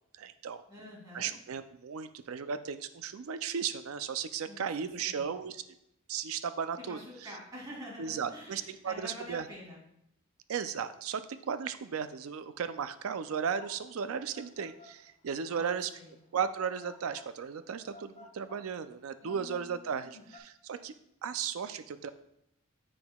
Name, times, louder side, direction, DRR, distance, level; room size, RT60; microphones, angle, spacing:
voice 1, 0.2-0.6 1.1-5.6 6.1-7.0 8.0-9.5 10.5-15.9 16.3-20.9 21.2-22.1, right 7 dB, 80° right, 11 dB, 0.4 m, -35 dB
voice 2, 0.7-1.3 4.5-4.6 5.0-5.3 6.8-9.8 15.5-16.1 19.2-20.2, equal, 20° right, -4 dB, 2.4 m, -47 dB
sound 1, 13.3-20.4, left 2 dB, 30° left, 0.6 m, -54 dB
7.6 x 6.0 x 2.3 m, 0.78 s
head